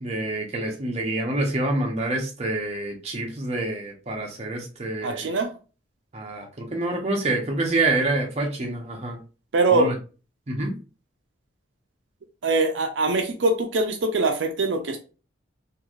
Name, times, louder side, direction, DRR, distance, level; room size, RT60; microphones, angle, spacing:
voice 1, 0.0-5.3 6.1-9.2 9.7-9.9 10.5-10.7, right 2 dB, 35° right, 1 dB, 0.7 m, -27 dB
voice 2, 5.0-5.5 9.5-9.9 12.4-15.0, right 3 dB, 70° right, 4 dB, 0.5 m, -22 dB
3.1 x 2.5 x 2.4 m, 0.34 s
head